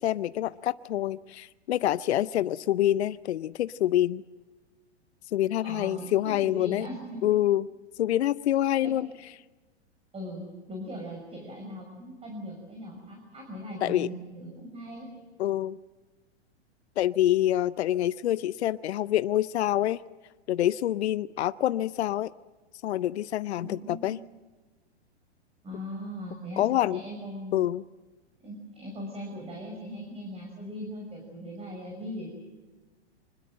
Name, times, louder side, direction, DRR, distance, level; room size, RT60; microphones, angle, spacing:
voice 1, 0.0-4.2 5.3-6.9 7.2-7.7 8.0-9.1 13.8-14.1 15.4-15.8 17.0-20.0 20.5-22.3 22.8-24.2 26.6-27.0 27.5-27.8, left 13 dB, 70° left, 16 dB, 0.7 m, -26 dB
voice 2, 5.6-7.3 8.8-9.0 10.1-15.1 23.6-24.2 25.6-27.5 28.4-32.3, equal, 15° right, 2 dB, 6.1 m, -39 dB
25.5 x 21.0 x 7.7 m, 1.3 s
hypercardioid pair, 115°, 34 cm